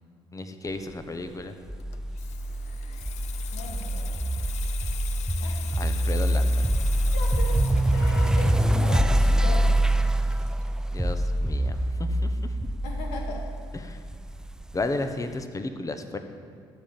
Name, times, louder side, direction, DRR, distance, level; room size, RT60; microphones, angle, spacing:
voice 1, 0.3-1.5 5.8-6.6 10.9-12.3 13.7-14.0 14.7-16.2, left 2 dB, 25° left, 8 dB, 1.1 m, -33 dB
sound 1, 1.7-14.9, right 1 dB, 5° right, 0.5 m, -25 dB
Water tap faucet / Sink (filling or washing), 1.8-11.1 11.4-11.7, left 10 dB, 60° left, 0.7 m, -42 dB
voice 2, 3.5-4.1 5.4-5.6 6.6-7.6 7.9-10.0 12.8-13.5, left 2 dB, 85° left, 0 dB, 1.9 m, -38 dB
14.0 x 5.3 x 7.6 m, 2.3 s
hypercardioid pair, 60°, 13 cm